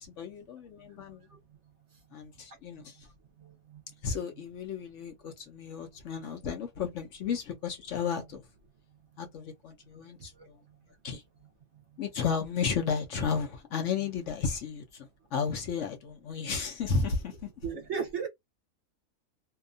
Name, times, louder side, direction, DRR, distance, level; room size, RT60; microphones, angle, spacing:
voice 1, 0.2-1.3 2.1-3.1 4.0-8.4 9.2-10.6 11.0-11.2 12.0-17.5, left 6 dB, 65° left, 0.9 m, -33 dB
voice 2, 17.6-18.3, right 6 dB, 60° right, 0.8 m, -33 dB
2.7 x 2.2 x 2.5 m
omnidirectional pair, 1.6 m